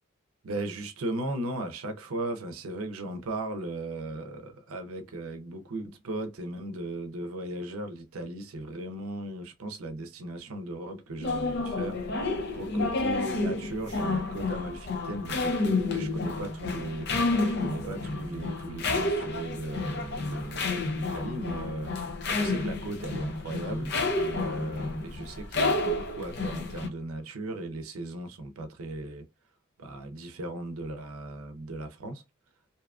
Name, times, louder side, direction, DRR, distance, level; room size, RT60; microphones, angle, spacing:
voice 1, 0.4-12.1 12.5-21.9 22.3-29.3 29.8-32.2, right 1 dB, 90° right, 0.6 m, -37 dB
sound 1, 11.2-26.9, left 3 dB, 50° left, 0.5 m, -30 dB
2.7 x 2.3 x 2.3 m
head